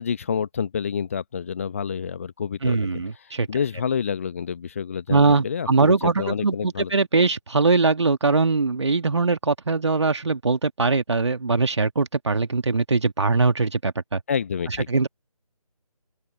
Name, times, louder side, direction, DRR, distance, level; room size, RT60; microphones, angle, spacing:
voice 1, 0.0-2.9 3.2-6.9 14.3-14.9, left 7 dB, 20° left, 1.4 m, -28 dB
voice 2, 2.6-3.5 5.1-14.2 14.9-15.1, right 3 dB, 45° right, 2.1 m, -21 dB
open air
figure-of-eight pair, 155°, 20 cm